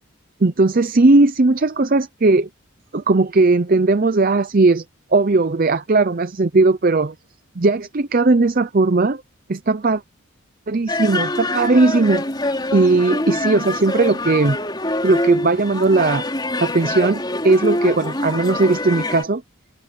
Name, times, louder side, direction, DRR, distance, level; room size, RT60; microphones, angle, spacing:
voice 1, 0.4-2.5 2.9-4.8 5.1-7.1 7.6-9.2 9.5-10.0 10.7-12.2 12.7-14.6 15.0-16.3 16.6-19.4, right 3 dB, 45° right, 0.6 m, -17 dB
sound 1, 10.9-19.2, left 1 dB, 20° left, 4.8 m, -25 dB
head